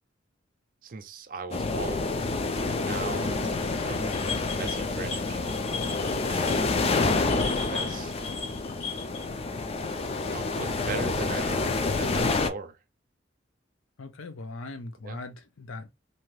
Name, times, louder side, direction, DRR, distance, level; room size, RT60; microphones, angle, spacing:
voice 1, 0.8-2.0 2.7-4.1 4.5-5.5 6.3-7.0 7.3-7.4 7.7-8.3 10.3-11.6 12.0-12.8 15.0-15.2, right 4 dB, 45° right, 0.4 m, -39 dB
sound 1, 1.5-12.5, left 3 dB, 30° left, 0.3 m, -28 dB
sound 2, 3.8-9.2, left 5 dB, 60° left, 1.5 m, -38 dB
voice 2, 14.0-15.9, left 2 dB, 90° left, 0.6 m, -40 dB
2.8 x 2.3 x 3.1 m
head